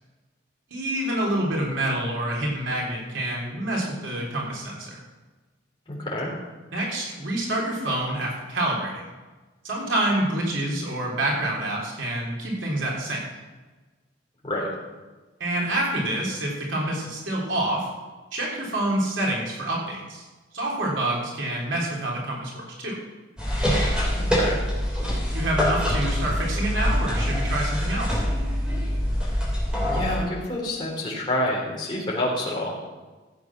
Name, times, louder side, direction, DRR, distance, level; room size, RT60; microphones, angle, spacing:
voice 1, 0.7-5.0 6.7-9.0 9.6-13.2 15.4-17.9 18.3-20.2 20.5-22.9 25.3-28.2, right 1 dB, 90° right, -3 dB, 3.7 m, -27 dB
voice 2, 5.9-6.3 14.4-14.7 24.2-24.6 29.9-32.7, left 1 dB, 25° left, -5 dB, 3.7 m, -28 dB
sound 1, 23.4-30.2, equal, 5° right, 3.5 m, -24 dB
15.0 x 8.3 x 6.1 m, 1.3 s
head